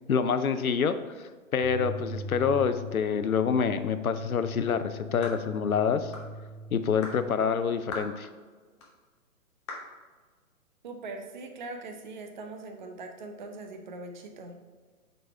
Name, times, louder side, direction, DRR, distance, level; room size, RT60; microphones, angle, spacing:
voice 1, 0.1-1.0 1.5-6.1 6.7-8.3, left 6 dB, 75° left, 11 dB, 0.6 m, -27 dB
sound 1, 1.6-7.2, left 2 dB, 40° left, 1.8 m, -40 dB
sound 2, 5.2-5.4 6.1-6.3 7.0-7.2 7.9-8.1 8.8-8.9 9.7-9.9, left 3 dB, 20° left, 0.7 m, -39 dB
voice 2, 10.8-14.6, right 3 dB, 35° right, 4 dB, 0.5 m, -41 dB
7.8 x 4.0 x 3.4 m, 1.4 s
figure-of-eight pair, 130°, 43 cm